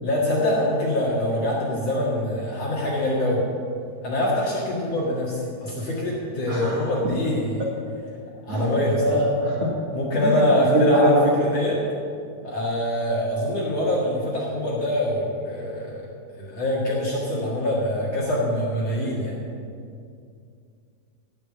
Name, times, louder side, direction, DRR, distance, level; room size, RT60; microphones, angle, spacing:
voice 1, 0.0-3.5 4.0-7.7 8.5-9.2 9.9-11.8 12.4-16.1 16.3-19.4, left 1 dB, 50° left, -5 dB, 2.3 m, -24 dB
voice 2, 6.5-6.9 8.5-8.7 9.0-9.7 10.2-11.2, right 1 dB, 45° right, -4 dB, 2.6 m, -22 dB
17.0 x 5.9 x 8.3 m, 2.4 s
omnidirectional pair, 4.7 m